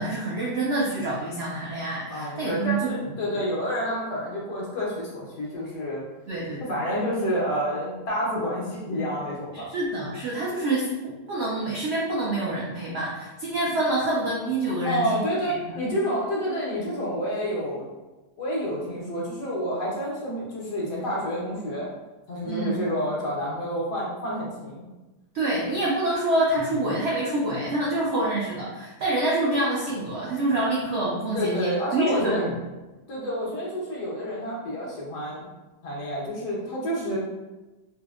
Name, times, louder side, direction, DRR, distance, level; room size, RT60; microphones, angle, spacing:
voice 1, 0.0-2.9 3.3-3.4 6.3-6.6 9.5-15.3 15.7-15.8 22.4-22.8 25.3-32.5, right 2 dB, 80° right, -5 dB, 0.5 m, -26 dB
voice 2, 2.1-6.0 6.6-9.7 14.8-17.9 18.4-21.9 22.3-24.9 31.3-32.4 33.1-35.5 35.8-37.2, equal, 80° left, -5 dB, 1.5 m, -29 dB
4.2 x 2.0 x 2.4 m, 1.1 s
omnidirectional pair, 1.7 m